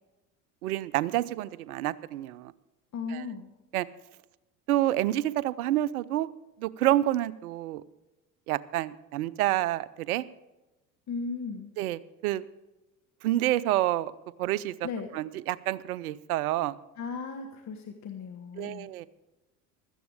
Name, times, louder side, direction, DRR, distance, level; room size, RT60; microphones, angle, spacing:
voice 1, 0.6-2.5 3.1-3.2 3.7-3.9 4.7-6.3 6.6-7.8 8.5-10.2 11.8-12.4 13.2-14.1 14.4-14.9 15.1-16.8 18.6-19.1, right 14 dB, 75° right, 17 dB, 0.7 m, -28 dB
voice 2, 2.9-3.5 11.1-11.7 14.8-15.1 17.0-18.9, left 4 dB, 35° left, 5 dB, 1.5 m, -36 dB
16.5 x 12.5 x 3.5 m, 1.0 s
hypercardioid pair, 70°, 45 cm